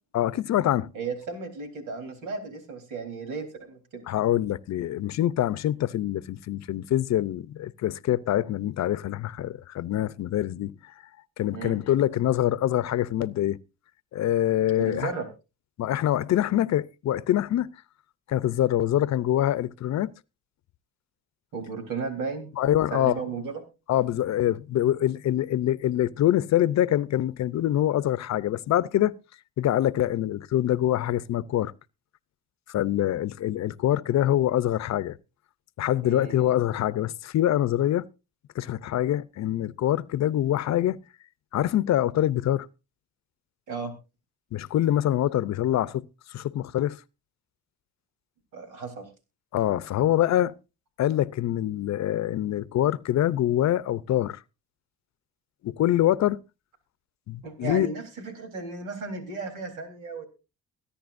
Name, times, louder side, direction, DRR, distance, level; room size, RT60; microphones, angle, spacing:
voice 1, 0.1-0.9 4.1-10.7 11.4-13.6 14.1-15.1 15.8-17.7 18.3-20.1 22.6-23.2 23.9-29.1 29.6-31.7 32.7-35.2 35.8-38.1 38.5-41.0 41.5-42.7 44.5-47.0 49.5-50.5 51.0-54.4 55.6-56.4 57.3-57.9, left 12 dB, 65° left, 0.6 m, -25 dB
voice 2, 0.9-4.0 11.5-11.8 14.8-15.3 21.5-22.5 22.9-23.6 36.0-36.4 43.7-43.9 48.5-49.1 57.4-60.2, right 4 dB, 90° right, 3.7 m, -34 dB
23.5 x 10.0 x 2.6 m
cardioid pair, 90°, 30 cm